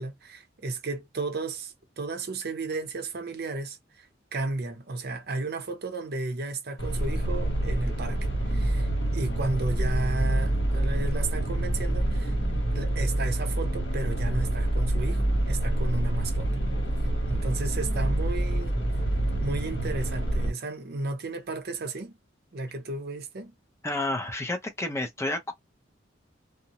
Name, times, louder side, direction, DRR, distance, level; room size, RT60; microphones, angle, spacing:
voice 1, 0.0-4.1 4.3-12.4 12.7-16.5 17.3-18.8 19.4-22.2 22.5-23.5, right 3 dB, 55° right, 0.7 m, -34 dB
sound 1, 6.8-20.5, right 1 dB, 70° left, 1.3 m, -27 dB
voice 2, 23.8-25.5, left 2 dB, 15° left, 0.6 m, -30 dB
2.5 x 2.1 x 2.9 m
head